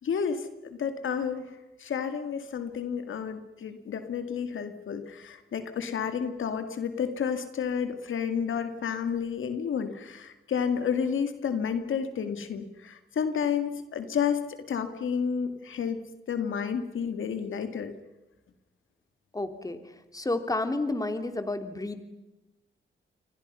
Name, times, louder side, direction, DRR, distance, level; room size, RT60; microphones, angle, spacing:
voice 1, 0.0-16.0 16.3-17.9, left 7 dB, 75° left, 9 dB, 2.2 m, -31 dB
voice 2, 19.3-22.1, left 2 dB, 15° left, 8 dB, 2.9 m, -31 dB
28.5 x 24.5 x 5.6 m, 1.0 s
cardioid pair, 75°, 21 cm